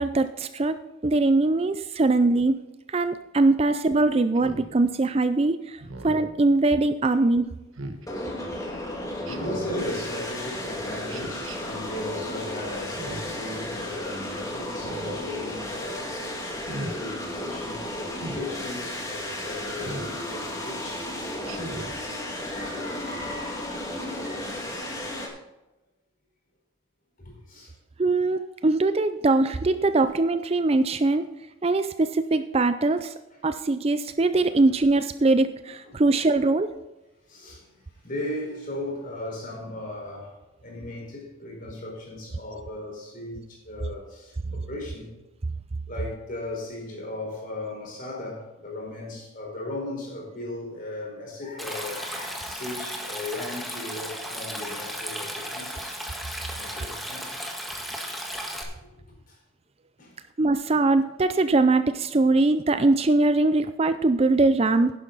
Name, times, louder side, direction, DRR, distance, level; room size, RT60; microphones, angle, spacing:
voice 1, 0.0-2.6 2.9-7.5 28.0-31.3 31.6-33.1 33.4-36.7 60.4-64.9, right 2 dB, 30° right, 0.4 m, -22 dB
Speech synthesizer, 4.3-4.7 5.8-6.3 7.7-8.0 9.2-9.7 11.1-11.6 12.9-13.4 14.7-15.2 16.5-16.9 18.1-18.4 19.8-20.1 21.4-21.9, right 1 dB, 75° right, 1.3 m, -37 dB
sound 1, 8.1-25.3, left 1 dB, 15° left, 2.1 m, -34 dB
voice 2, 8.3-16.1 16.7-21.1 21.7-22.0 22.5-24.6 27.2-27.7 34.4-34.6 35.8-36.0 37.3-45.2 45.9-56.0 56.6-57.6 58.2-58.4 58.8-59.4 60.0-60.1, left 2 dB, 40° left, 4.5 m, -37 dB
Stream, 51.6-58.6, equal, ahead, 1.5 m, -35 dB
11.5 x 11.0 x 4.0 m
head